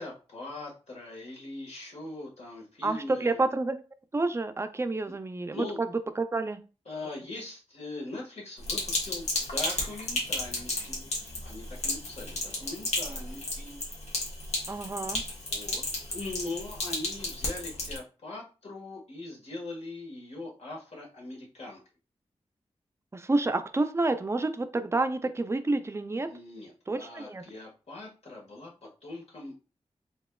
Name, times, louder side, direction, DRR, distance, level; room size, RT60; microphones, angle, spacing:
voice 1, 0.0-3.5 5.1-5.2 5.5-5.8 6.8-11.1 11.4-13.8 15.5-15.8 16.1-21.8 26.3-28.7 29.0-29.6, left 2 dB, 70° left, -2 dB, 1.6 m, -41 dB
voice 2, 2.8-3.8 4.1-5.7 6.2-6.6 14.7-15.2 23.1-26.3 26.9-27.4, right 2 dB, 25° right, 9 dB, 0.4 m, -29 dB
Sink (filling or washing), 8.6-18.0, left 2 dB, 85° left, 1.3 m, -33 dB
4.2 x 3.5 x 2.3 m, 0.34 s
wide cardioid pair, 80°, 11 cm